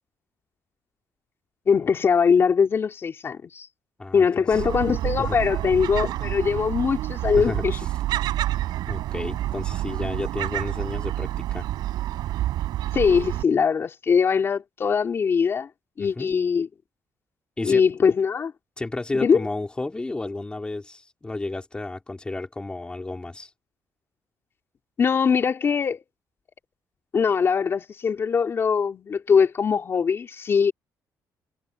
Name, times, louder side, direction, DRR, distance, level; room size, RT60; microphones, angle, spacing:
voice 1, 1.7-3.7 4.1-7.8 12.9-15.7 16.0-16.7 17.6-18.5 19.1-19.4 25.0-26.0 27.1-30.7, left 6 dB, 35° left, 3.3 m, -21 dB
voice 2, 4.0-4.6 5.2-5.4 7.3-7.9 8.8-11.7 16.0-16.3 17.6-17.8 18.8-23.5, left 2 dB, 15° left, 4.3 m, -32 dB
Gull seagull, 4.5-13.4, right 14 dB, 85° right, 7.3 m, -28 dB
cardioid pair, 135°, 7 cm